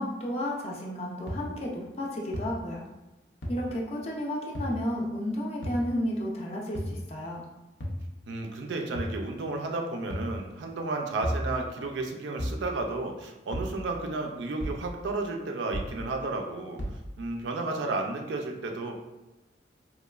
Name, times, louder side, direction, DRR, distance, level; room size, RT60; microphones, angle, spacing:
voice 1, 0.0-2.8 3.5-7.4, left 1 dB, 35° left, -2 dB, 0.4 m, -32 dB
sound 1, 1.3-1.4 2.3-2.4 3.4-3.5 4.5-4.7 5.6-5.8 6.7-6.9 7.8-8.0 8.9-9.2 10.1-10.3 11.2-11.4 12.4-12.6 13.5-13.7 14.6-14.8 15.7-15.9 16.8-17.0, equal, 85° left, 0.6 m, -32 dB
voice 2, 8.3-16.8 17.2-18.9, right 3 dB, 80° right, 3 dB, 0.4 m, -32 dB
2.9 x 2.2 x 2.3 m, 1.0 s
head